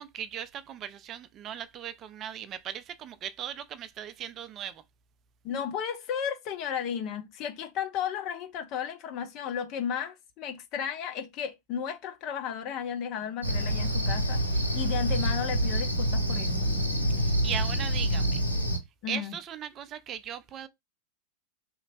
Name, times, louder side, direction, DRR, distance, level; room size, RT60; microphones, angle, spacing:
voice 1, 0.0-4.8 17.2-18.4 19.1-20.7, right 9 dB, 30° right, 0.3 m, -38 dB
voice 2, 5.4-16.7 19.0-19.4, left 8 dB, 40° left, 0.6 m, -34 dB
Cricket, 13.4-18.8, equal, 85° right, 0.8 m, -27 dB
3.2 x 2.8 x 2.4 m
figure-of-eight pair, 90°, 0 cm